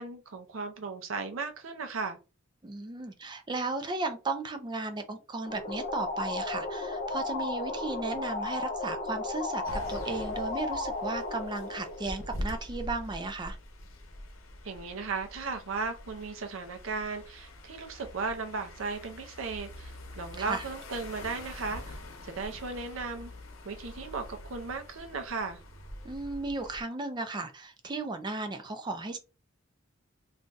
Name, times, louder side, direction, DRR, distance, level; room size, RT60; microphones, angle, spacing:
voice 1, 0.0-2.2 14.6-23.3 23.6-25.6, right 4 dB, 70° right, 0.6 m, -36 dB
voice 2, 2.6-13.6 20.4-20.6 26.0-29.2, right 3 dB, 20° right, 0.4 m, -35 dB
sound 1, 5.5-12.8, left 2 dB, 45° left, 0.4 m, -35 dB
sound 2, 9.6-26.8, left 1 dB, 75° left, 0.8 m, -44 dB
2.5 x 2.2 x 3.8 m
head